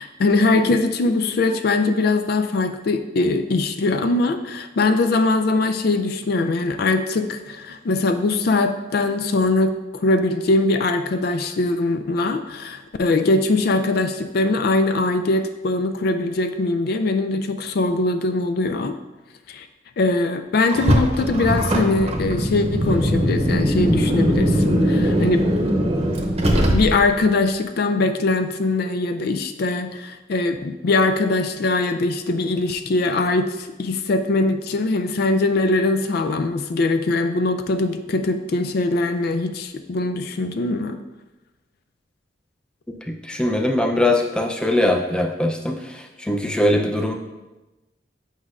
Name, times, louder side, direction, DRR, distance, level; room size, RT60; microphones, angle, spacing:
voice 1, 0.0-19.0 19.5-19.7 20.0-25.6 26.7-41.0, left 2 dB, 60° left, 8 dB, 0.4 m, -21 dB
Car, 20.7-27.2, equal, 35° right, 0.8 m, -20 dB
voice 2, 43.1-47.1, left 1 dB, 5° left, 2 dB, 0.5 m, -21 dB
8.1 x 5.3 x 2.5 m, 1.1 s
head